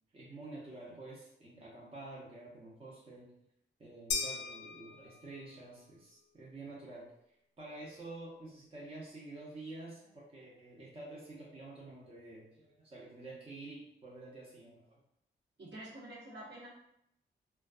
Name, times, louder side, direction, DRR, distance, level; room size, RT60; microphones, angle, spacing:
voice 1, 0.1-3.3 3.8-7.1 7.6-15.0, right 2 dB, 30° right, -6 dB, 0.7 m, -49 dB
sound 1, 4.1-5.6, left 4 dB, 65° left, 0.4 m, -38 dB
voice 2, 15.6-16.7, right 1 dB, 60° right, -7 dB, 1.1 m, -47 dB
2.5 x 2.2 x 2.3 m, 0.79 s
cardioid pair, 75°, 20 cm